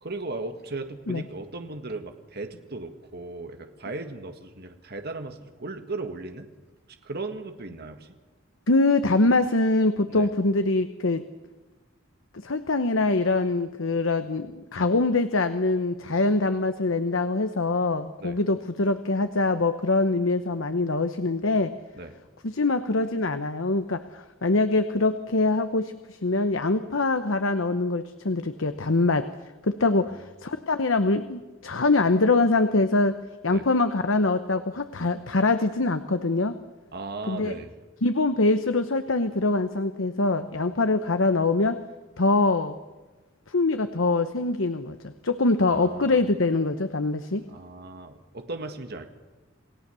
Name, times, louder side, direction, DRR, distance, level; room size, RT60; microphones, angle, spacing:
voice 1, 0.0-6.5 7.0-8.2 10.1-10.3 18.2-18.4 21.9-22.2 30.0-30.1 33.5-33.6 36.9-37.7 45.7-46.2 47.5-49.1, right 2 dB, 55° right, 6 dB, 1.8 m, -37 dB
voice 2, 8.7-11.2 12.4-21.7 22.4-29.3 29.6-33.1 33.4-36.5 37.3-37.5 38.0-41.8 42.2-42.7 43.5-47.4, left 3 dB, 80° left, 10 dB, 1.0 m, -24 dB
28.5 x 17.0 x 7.0 m, 1.2 s
head